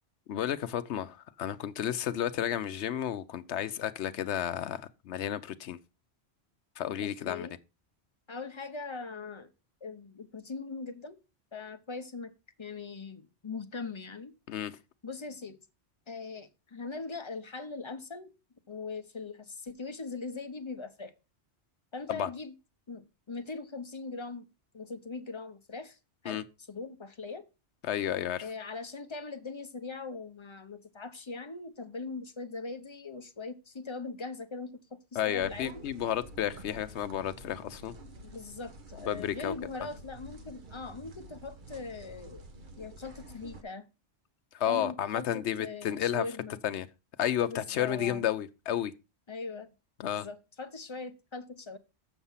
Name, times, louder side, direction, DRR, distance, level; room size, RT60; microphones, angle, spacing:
voice 1, 0.3-5.8 6.8-7.5 14.5-14.7 22.1-22.3 26.3-26.4 27.8-28.4 35.2-37.9 39.0-39.5 44.5-46.2 46.6-46.9 47.2-48.9 50.0-50.3, left 10 dB, 85° left, 1.0 m, -32 dB
voice 2, 7.0-7.6 8.3-9.5 9.8-11.2 11.5-12.3 12.6-14.3 15.0-15.6 16.1-18.4 18.7-21.1 21.9-22.5 22.9-24.5 24.7-26.0 26.2-27.5 28.4-35.8 38.2-42.5 42.8-43.9 44.7-46.6 47.5-48.2 49.3-49.7 50.1-51.8, left 4 dB, 30° left, 0.8 m, -41 dB
sound 1, 35.4-43.6, right 1 dB, 50° right, 1.1 m, -49 dB
7.3 x 7.0 x 5.6 m
omnidirectional pair, 1.1 m